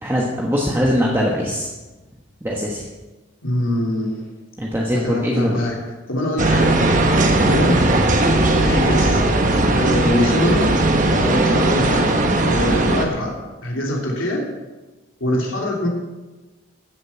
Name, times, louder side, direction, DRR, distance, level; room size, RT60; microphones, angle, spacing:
voice 1, 0.0-1.7 2.4-2.9 4.6-5.6, equal, 10° right, -3 dB, 1.3 m, -21 dB
voice 2, 3.4-4.2 4.9-5.8 6.1-6.7 7.4-8.0 8.6-9.2 9.7-10.7 11.2-12.2 12.5-13.4 13.6-14.5 15.2-15.9, left 1 dB, 85° left, -2 dB, 3.1 m, -23 dB
sound 1, 6.4-13.1, right 2 dB, 40° right, 1.3 m, -17 dB
15.0 x 7.6 x 5.7 m, 1.2 s
head